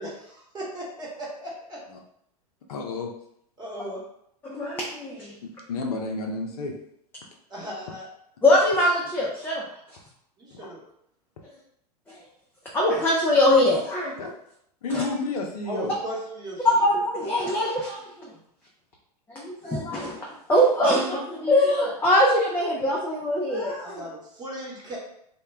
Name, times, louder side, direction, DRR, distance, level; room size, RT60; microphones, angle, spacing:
voice 1, 0.0-1.8 3.6-4.0 7.5-8.1 10.4-10.8 15.7-16.7 23.8-25.0, right 1 dB, 20° right, -4 dB, 1.0 m, -36 dB
voice 2, 2.7-3.1 5.4-6.7 10.5-10.7 14.2-14.3 14.8-15.9, left 3 dB, 70° left, 1 dB, 0.5 m, -31 dB
voice 3, 4.4-5.4 8.4-9.7 12.7-14.2 14.9-15.0 16.6-18.3 19.3-24.0, left 1 dB, 10° left, -4 dB, 0.4 m, -22 dB
2.2 x 2.1 x 3.2 m, 0.73 s
hypercardioid pair, 95°, 20 cm